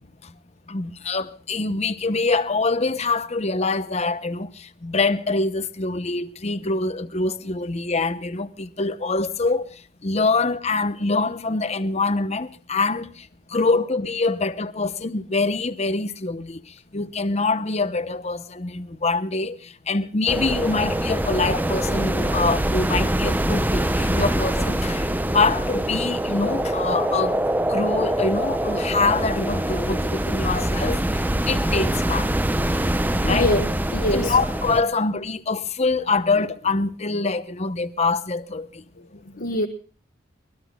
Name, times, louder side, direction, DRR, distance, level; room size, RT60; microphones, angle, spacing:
voice 1, 0.7-9.6 10.0-16.6 16.9-32.3 33.1-33.5 34.1-38.8, left 3 dB, 35° left, 0.8 m, -25 dB
sound 1, 20.3-34.8, right 1 dB, 10° right, 0.6 m, -24 dB
voice 2, 33.2-34.3 39.3-39.7, left 1 dB, 55° left, 1.3 m, -24 dB
23.5 x 19.5 x 2.3 m
head